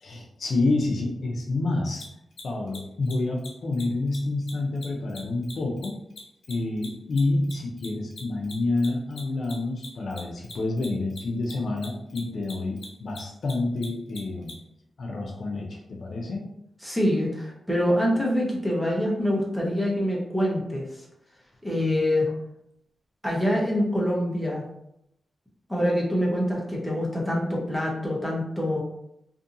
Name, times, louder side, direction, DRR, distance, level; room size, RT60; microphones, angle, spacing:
voice 1, 0.0-2.0 2.4-6.0 6.5-14.5 15.0-16.4, left 2 dB, 60° left, 1 dB, 0.5 m, -28 dB
Mechanisms, 1.9-2.0 2.3-2.4 2.7-2.8 3.0-3.1 3.4-3.5 3.7-4.2 4.5-7.2 7.4-14.5, left 5 dB, 80° left, 1.1 m, -42 dB
voice 2, 16.8-20.8 21.6-22.3 23.2-24.7 25.7-28.8, equal, ahead, -4 dB, 0.7 m, -25 dB
2.6 x 2.5 x 2.5 m, 0.80 s
wide cardioid pair, 130°, 0 cm